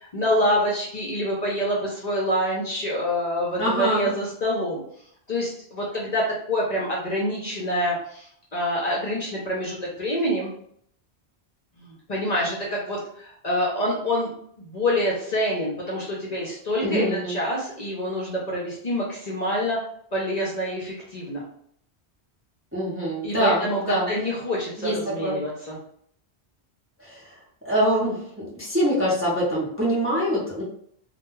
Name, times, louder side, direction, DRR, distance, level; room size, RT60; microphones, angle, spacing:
voice 1, 0.0-4.8 5.3-10.5 11.8-14.3 14.6-19.8 20.1-21.4 23.2-25.8, equal, 50° left, -4 dB, 0.6 m, -26 dB
voice 2, 3.6-4.1 16.8-17.3 22.7-24.1 24.8-24.9 25.2-25.4 27.0-27.3 27.6-30.6, equal, 15° right, -6 dB, 0.5 m, -24 dB
2.2 x 2.2 x 3.0 m, 0.66 s
omnidirectional pair, 1.1 m